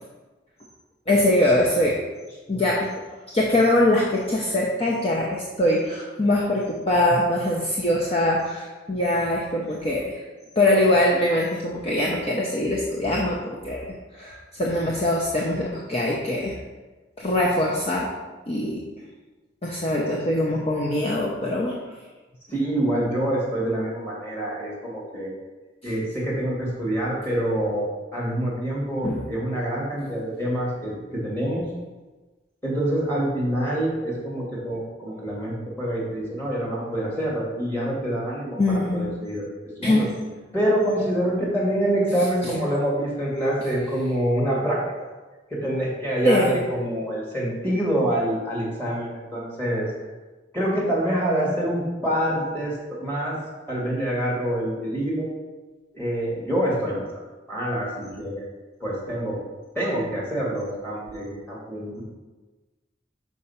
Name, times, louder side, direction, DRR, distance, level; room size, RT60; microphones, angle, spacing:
voice 1, 1.1-2.0 2.5-3.1 3.3-10.2 10.6-13.9 14.1-16.6 17.2-18.1 18.5-18.9 19.6-21.8 29.0-29.3 38.6-39.2 39.8-40.1 46.2-46.6, left 1 dB, 35° left, -3 dB, 0.7 m, -22 dB
voice 2, 22.5-25.3 25.8-31.7 32.6-39.5 39.8-40.1 40.5-44.8 45.5-49.9 50.5-53.4 53.7-55.3 55.9-57.1 57.5-58.4 58.8-59.4 59.7-62.0, right 1 dB, 10° left, -5 dB, 2.2 m, -26 dB
5.5 x 4.8 x 5.6 m, 1.2 s
head